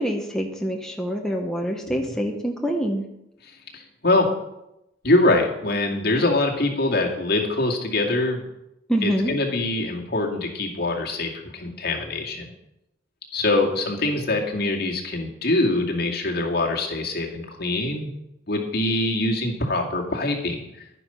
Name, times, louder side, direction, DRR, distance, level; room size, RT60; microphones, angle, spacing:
voice 1, 0.0-3.0 8.9-9.3, equal, 5° left, 0 dB, 1.2 m, -25 dB
voice 2, 3.4-4.3 5.0-8.5 9.0-12.5 13.3-18.1 18.5-20.6, left 2 dB, 60° left, 0 dB, 2.2 m, -24 dB
11.5 x 9.7 x 5.7 m, 0.87 s
head